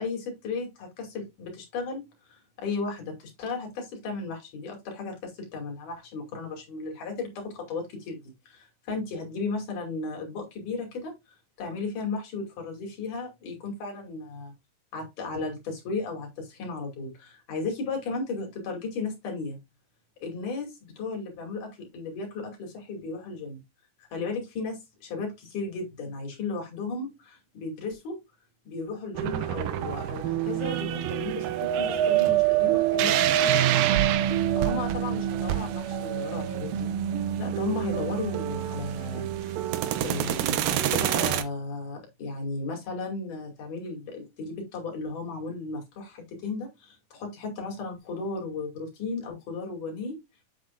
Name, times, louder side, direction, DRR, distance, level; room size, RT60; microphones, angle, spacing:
voice 1, 0.0-11.1 11.6-14.5 14.9-19.6 20.2-23.6 24.1-28.2 28.7-33.4 34.6-36.9 37.4-39.6 40.0-50.2, left 3 dB, 65° left, 1 dB, 4.0 m, -35 dB
sound 1, 29.1-41.4, right 11 dB, 80° right, 2.5 m, -28 dB
Wind, 31.6-35.1 35.7-36.7 37.5-37.6, right 12 dB, 55° right, 1.6 m, -26 dB
7.9 x 7.8 x 2.4 m, 0.21 s
omnidirectional pair, 4.0 m